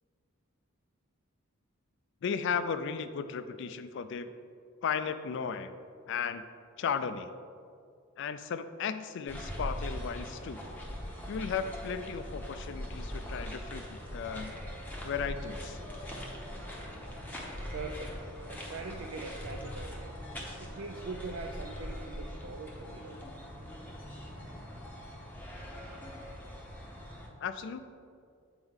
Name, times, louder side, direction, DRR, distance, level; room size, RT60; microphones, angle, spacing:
voice 1, 2.2-4.3 4.8-5.7 6.1-6.4 6.8-7.3 8.2-10.6 11.3-14.5 15.0-15.8 27.4-27.8, left 6 dB, 60° left, 11 dB, 0.3 m, -35 dB
sound 1, 9.3-27.3, equal, 10° left, 0.8 m, -42 dB
sound 2, 13.4-24.8, equal, 25° right, 1.3 m, -53 dB
voice 2, 17.7-18.2 18.5-20.3 20.6-23.2, right 3 dB, 70° right, 3 dB, 0.4 m, -42 dB
8.0 x 4.4 x 3.6 m, 2.3 s
head